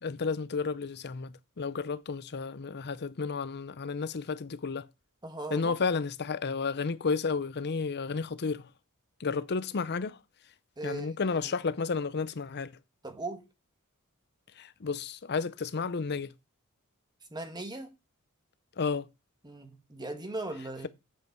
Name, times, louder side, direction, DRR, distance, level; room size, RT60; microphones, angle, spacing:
voice 1, 0.0-4.9 5.5-8.7 9.2-10.2 10.8-12.7 14.6-16.3 18.8-19.1, left 4 dB, 50° left, 0.6 m, -32 dB
voice 2, 5.2-5.9 10.8-11.6 13.0-13.5 17.3-17.9 19.4-20.9, right 2 dB, 20° right, 1.4 m, -39 dB
8.3 x 7.6 x 4.6 m
head